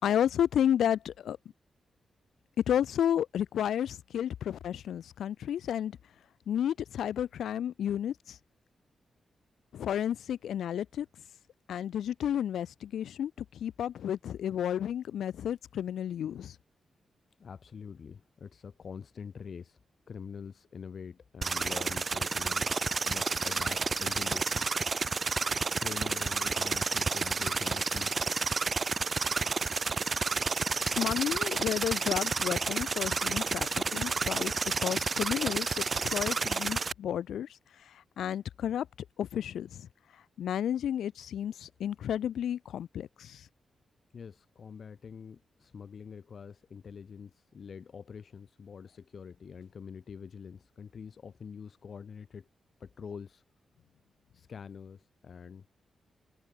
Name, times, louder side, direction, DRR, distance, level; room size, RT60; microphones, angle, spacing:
voice 1, 0.0-1.4 2.7-5.9 6.5-8.1 9.7-11.1 11.7-13.3 13.6-16.5 31.0-34.5 34.8-37.5 38.2-38.9 39.2-39.9 40.4-43.4, left 10 dB, 90° left, 2.3 m, -31 dB
voice 2, 17.4-19.8 20.1-22.7 23.1-24.7 25.8-28.1 44.1-52.5 52.8-53.4 54.3-55.7, left 6 dB, 60° left, 4.9 m, -45 dB
sound 1, 21.4-36.9, right 4 dB, 45° right, 0.8 m, -30 dB
cardioid pair, 70°, 0 cm